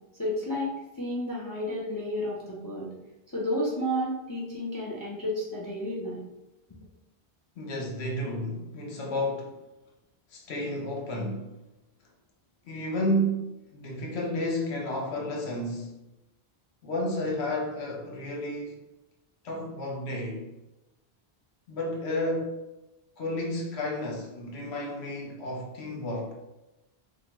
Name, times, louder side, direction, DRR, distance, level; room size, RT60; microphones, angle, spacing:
voice 1, 0.2-2.9 3.3-6.2, equal, 30° left, -5 dB, 0.4 m, -31 dB
voice 2, 7.6-9.6 10.3-11.5 12.6-13.5 13.7-16.0 16.8-18.8 19.4-20.5 21.7-22.6 23.2-26.3, left 1 dB, 85° left, -1 dB, 0.9 m, -31 dB
2.7 x 2.1 x 2.9 m, 0.98 s
omnidirectional pair, 1.1 m